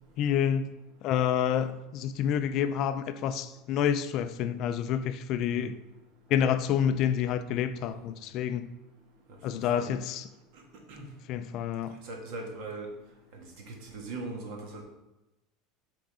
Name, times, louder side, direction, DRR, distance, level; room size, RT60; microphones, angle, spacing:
voice 1, 0.2-0.7 1.0-5.7 6.3-8.7 9.4-10.2 11.3-11.9, left 9 dB, 45° left, 0.3 m, -28 dB
voice 2, 12.0-12.9 13.3-14.8, right 3 dB, 60° right, 1.5 m, -40 dB
6.3 x 3.8 x 4.8 m
cardioid pair, 160°, 0 cm